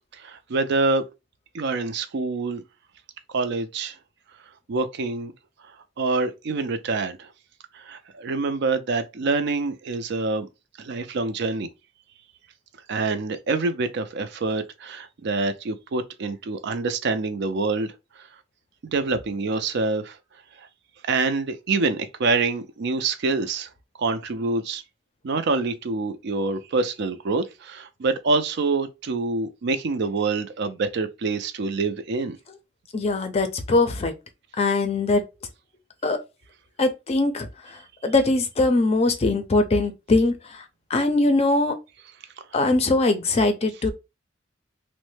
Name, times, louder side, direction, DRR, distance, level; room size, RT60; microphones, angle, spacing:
voice 1, 0.2-1.0 1.5-2.6 3.3-4.0 4.7-5.3 6.0-7.3 7.7-10.5 10.8-11.7 12.9-17.9 18.9-20.2 21.1-23.7 24.0-24.8 25.2-32.4, right 3 dB, 60° right, 0.4 m, -26 dB
voice 2, 32.9-34.1 34.6-35.2 36.0-36.2 36.8-40.6 40.9-41.7 42.5-43.9, left 2 dB, 30° left, 0.5 m, -22 dB
3.1 x 2.1 x 3.1 m
head